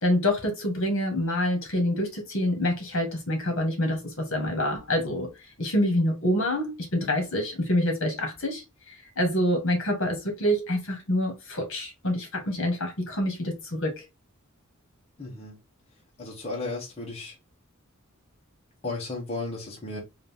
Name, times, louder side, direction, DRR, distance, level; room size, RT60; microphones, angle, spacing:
voice 1, 0.0-5.3 5.6-14.0, left 1 dB, 60° left, 1.6 m, -26 dB
voice 2, 15.2-15.6 16.2-17.3 18.8-20.0, left 2 dB, 30° left, 1.0 m, -34 dB
3.9 x 2.7 x 3.5 m
head